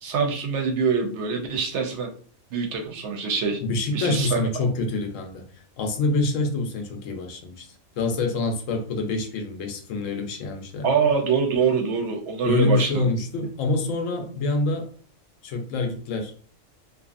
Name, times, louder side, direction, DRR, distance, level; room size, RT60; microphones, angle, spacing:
voice 1, 0.0-2.1 2.5-3.6 3.9-4.4 10.8-13.1, right 5 dB, 65° right, 2 dB, 0.8 m, -24 dB
voice 2, 3.6-5.5 5.8-7.7 8.0-10.9 12.4-14.9 15.4-16.3, left 3 dB, 75° left, 4 dB, 0.9 m, -26 dB
2.6 x 2.4 x 2.4 m, 0.42 s
omnidirectional pair, 1.4 m